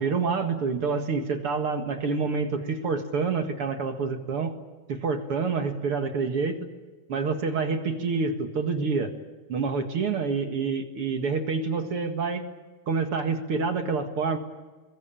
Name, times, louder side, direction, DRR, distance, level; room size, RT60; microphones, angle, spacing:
voice 1, 0.0-4.6 4.9-6.7 7.1-9.1 9.5-12.5 12.9-14.4, right 4 dB, 45° right, 6 dB, 2.2 m, -27 dB
22.5 x 22.5 x 9.0 m, 1.3 s
omnidirectional pair, 4.1 m